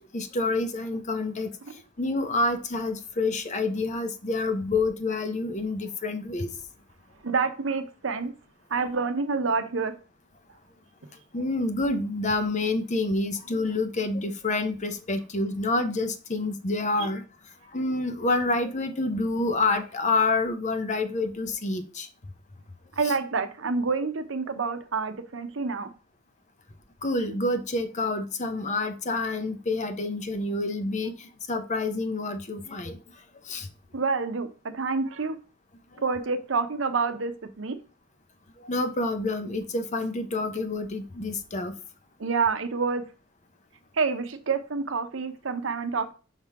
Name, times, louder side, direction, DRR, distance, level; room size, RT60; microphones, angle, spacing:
voice 1, 0.1-1.5 2.0-6.5 11.3-17.2 17.7-22.1 23.0-23.1 27.0-33.0 33.4-33.7 38.6-41.7, left 2 dB, 40° left, 9 dB, 0.8 m, -28 dB
voice 2, 7.2-8.3 8.7-9.9 17.0-17.1 23.0-25.9 33.9-34.5 34.7-35.4 36.0-37.8 42.2-43.0 44.0-46.1, right 4 dB, 75° right, 9 dB, 0.8 m, -28 dB
5.6 x 3.7 x 4.6 m, 0.35 s
head